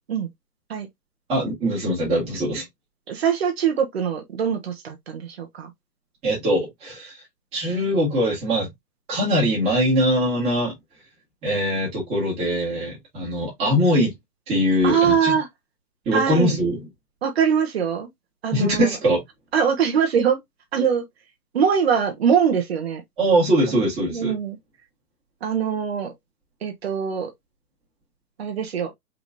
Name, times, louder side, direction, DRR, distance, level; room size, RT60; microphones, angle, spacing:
voice 1, 1.3-2.6 6.2-7.1 7.5-8.7 9.1-10.7 11.4-14.1 14.5-15.3 16.1-16.8 18.5-19.2 23.2-24.3, equal, 10° right, 2.2 m, -22 dB
voice 2, 3.1-5.7 14.8-15.5 16.1-16.6 17.2-18.1 18.4-18.9 19.5-20.4 20.7-21.0 21.5-23.0 24.1-24.6 25.4-26.1 26.6-27.3 28.4-28.9, right 7 dB, 40° right, 1.5 m, -22 dB
4.7 x 3.7 x 2.7 m
hypercardioid pair, 160°, 49 cm